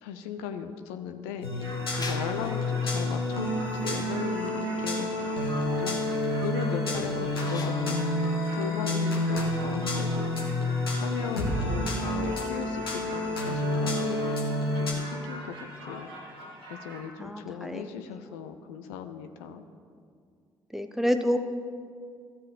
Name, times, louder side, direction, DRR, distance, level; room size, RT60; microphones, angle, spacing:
voice 1, 0.0-5.4 5.8-8.2 8.5-14.5 14.7-16.1 16.7-19.6, left 7 dB, 70° left, 8 dB, 0.5 m, -37 dB
sound 1, 1.4-14.9, left 1 dB, 90° left, 1.3 m, -29 dB
sound 2, 1.6-9.0, left 3 dB, 30° left, 1.3 m, -44 dB
sound 3, 1.6-17.0, equal, 85° right, 2.1 m, -43 dB
voice 2, 17.2-18.1 20.7-21.4, equal, 5° right, 7 dB, 0.7 m, -28 dB
14.0 x 7.5 x 3.7 m, 2.2 s
figure-of-eight pair, 45°, 12 cm